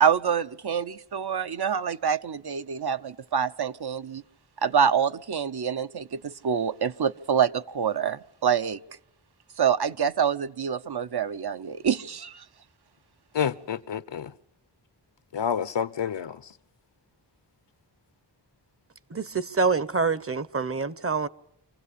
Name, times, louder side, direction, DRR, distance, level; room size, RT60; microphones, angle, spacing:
voice 1, 0.0-4.2 4.6-6.1 6.4-8.8 9.6-12.3, right 7 dB, 60° right, 0.8 m, -26 dB
voice 2, 13.3-14.3 15.3-16.3, left 8 dB, 80° left, 0.9 m, -28 dB
voice 3, 19.1-21.3, right 4 dB, 30° right, 0.8 m, -26 dB
26.0 x 16.0 x 8.4 m
wide cardioid pair, 70°, 43 cm